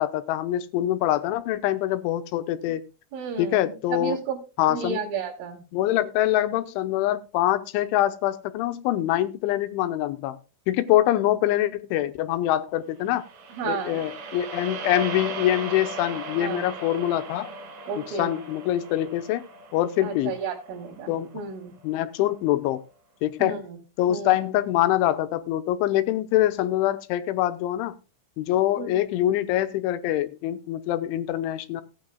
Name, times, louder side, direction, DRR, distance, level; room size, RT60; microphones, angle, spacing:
voice 1, 0.0-2.8 3.4-4.2 4.6-5.0 5.7-10.4 10.7-13.3 13.6-17.5 18.0-19.4 19.7-20.3 21.1-21.3 21.8-22.8 23.2-23.6 24.0-28.0 28.4-31.8, left 13 dB, 85° left, 3.1 m, -24 dB
voice 2, 3.1-4.4 4.7-5.6 13.5-14.0 16.4-16.7 17.9-18.4 20.0-21.8 23.4-23.8 24.1-24.3 28.8-29.0, right 6 dB, 85° right, 5.0 m, -32 dB
sound 1, 13.1-21.4, right 3 dB, 65° right, 4.4 m, -38 dB
17.5 x 9.0 x 2.2 m
omnidirectional pair, 5.4 m